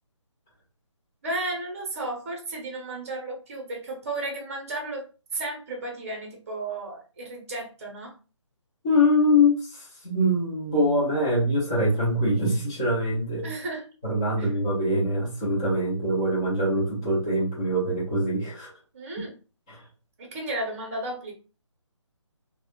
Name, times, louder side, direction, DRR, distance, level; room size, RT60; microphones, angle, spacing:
voice 1, 1.2-5.1 5.3-8.1 13.4-13.9 14.4-14.5 18.9-19.4 20.2-21.3, right 2 dB, 30° right, 1 dB, 0.7 m, -33 dB
voice 2, 8.8-13.5 14.0-18.7 19.7-19.8, left 1 dB, 10° left, -6 dB, 0.4 m, -24 dB
2.1 x 2.1 x 2.8 m, 0.34 s
figure-of-eight pair, 165°, 16 cm